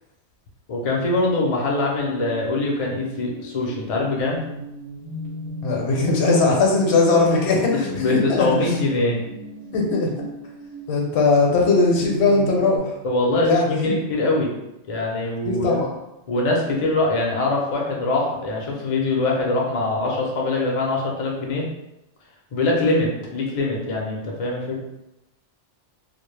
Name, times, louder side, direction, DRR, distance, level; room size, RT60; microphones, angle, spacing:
voice 1, 0.7-4.4 8.0-9.2 13.0-14.5 14.9-15.8 16.3-21.6 22.5-24.8, left 2 dB, 50° left, -2 dB, 0.4 m, -23 dB
sound 1, 2.0-12.8, right 2 dB, 55° right, 0.7 m, -36 dB
voice 2, 5.6-8.7 9.7-10.1 10.9-12.9 13.4-13.9 15.5-15.9, left 3 dB, 75° left, -1 dB, 0.9 m, -19 dB
2.1 x 2.0 x 3.1 m, 0.92 s
omnidirectional pair, 1.1 m